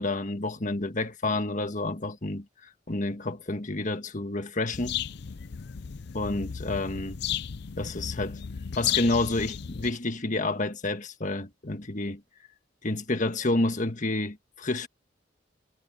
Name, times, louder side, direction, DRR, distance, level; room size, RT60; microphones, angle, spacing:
voice 1, 0.0-2.4 2.9-5.0 6.1-7.2 7.8-8.4 8.7-12.2 12.8-14.9, left 2 dB, 40° left, 1.6 m, -29 dB
sound 1, 4.7-9.9, left 9 dB, 60° left, 0.5 m, -34 dB
head